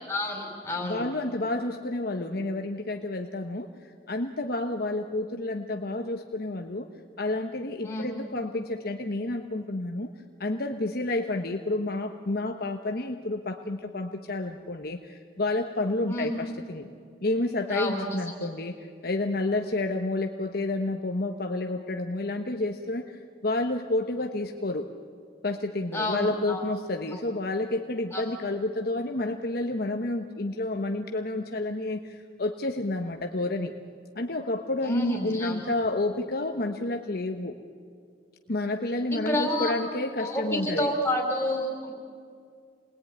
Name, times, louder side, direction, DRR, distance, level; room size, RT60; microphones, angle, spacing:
voice 1, 0.1-1.1 7.8-8.0 16.1-16.3 17.7-18.0 25.9-26.6 28.1-28.2 34.8-35.6 39.3-39.8 40.2-41.9, left 1 dB, 10° left, -1 dB, 5.2 m, -29 dB
voice 2, 0.8-6.9 7.2-10.1 10.4-16.9 17.2-24.9 25.4-33.7 34.1-37.6 38.5-40.9, left 2 dB, 55° left, 4 dB, 1.1 m, -30 dB
28.5 x 20.5 x 9.5 m, 2.2 s
head